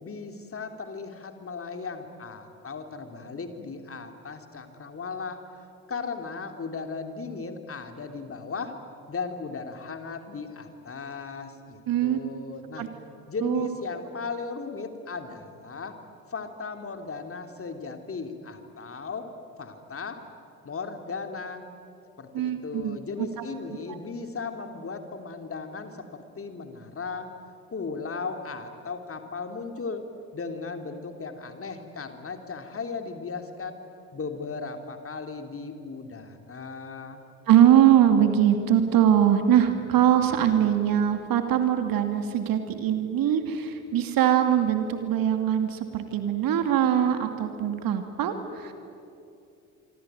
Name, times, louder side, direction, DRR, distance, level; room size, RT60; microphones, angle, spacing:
voice 1, 0.0-5.4 5.9-8.8 9.1-12.9 13.3-16.0 16.3-19.3 19.6-20.2 20.6-21.7 22.2-27.3 27.7-30.1 30.3-33.8 34.1-37.2, left 4 dB, 30° left, 6 dB, 3.1 m, -36 dB
voice 2, 11.9-12.2 12.8-12.9 13.4-13.7 22.3-23.4 37.5-48.7, right 10 dB, 50° right, 8 dB, 2.5 m, -22 dB
27.0 x 23.5 x 9.1 m, 2.6 s
figure-of-eight pair, 50°, 43 cm